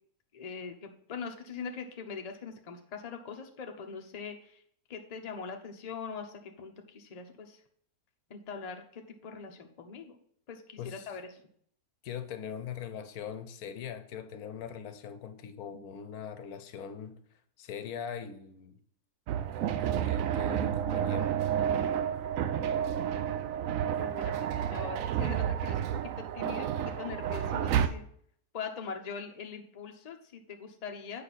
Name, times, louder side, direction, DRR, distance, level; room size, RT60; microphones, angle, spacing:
voice 1, 0.3-4.6 4.9-7.6 8.3-10.2 10.5-11.5 24.0-28.0 28.5-31.2, left 5 dB, 35° left, 0.7 m, -42 dB
voice 2, 12.0-17.2 17.6-18.8 19.7-21.4, left 8 dB, 80° left, 1.1 m, -41 dB
sound 1, 19.3-27.9, right 9 dB, 70° right, 0.9 m, -30 dB
8.1 x 5.4 x 4.1 m
omnidirectional pair, 1.6 m